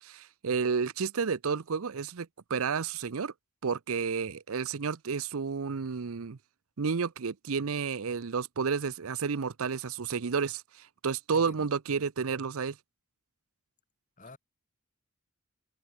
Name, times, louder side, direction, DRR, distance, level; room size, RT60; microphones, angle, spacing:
voice 1, 0.0-3.3 3.6-6.4 6.8-12.8, right 5 dB, 75° right, 0.6 m, -31 dB
voice 2, 11.3-11.7 14.2-14.4, left 2 dB, 35° left, 1.5 m, -48 dB
head